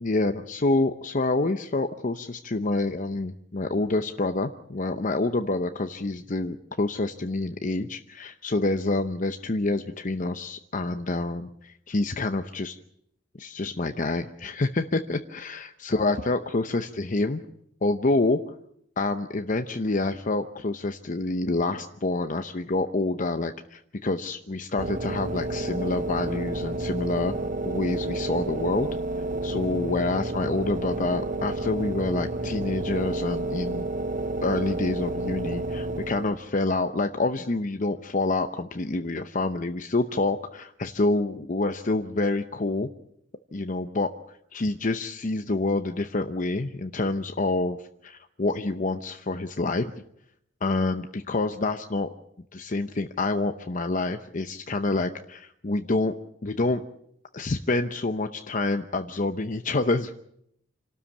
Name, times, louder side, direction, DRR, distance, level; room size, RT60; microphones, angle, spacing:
voice 1, 0.0-12.8 13.4-17.4 17.8-18.5 19.0-27.3 27.6-28.9 29.4-33.9 34.4-42.9 43.5-44.1 44.5-49.9 50.6-52.1 52.5-56.1 56.4-56.8 57.3-60.1, left 2 dB, 45° left, 7 dB, 0.8 m, -27 dB
sound 1, 24.8-36.5, right 2 dB, 45° right, 0.9 m, -30 dB
27.5 x 13.0 x 8.4 m, 0.74 s
head